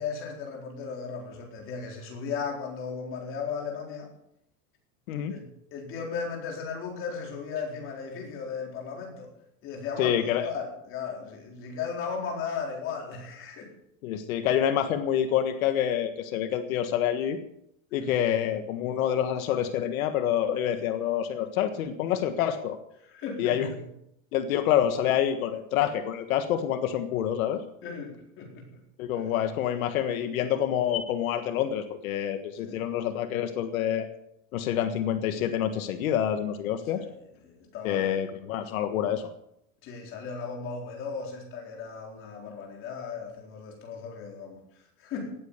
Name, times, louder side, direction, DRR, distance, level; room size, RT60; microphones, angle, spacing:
voice 1, 0.0-4.1 5.3-5.5 5.7-9.3 9.6-13.7 18.0-18.1 23.0-23.8 27.8-28.8 32.6-32.8 37.0-37.2 37.4-38.2 39.8-45.3, left 5 dB, 30° left, 0 dB, 4.0 m, -36 dB
voice 2, 10.0-10.5 14.0-17.4 17.9-22.8 23.4-23.7 24.3-27.6 29.0-34.1 34.5-37.0 37.8-39.3, left 10 dB, 85° left, 8 dB, 1.6 m, -27 dB
18.0 x 8.9 x 6.8 m, 0.77 s
supercardioid pair, 175°, 41 cm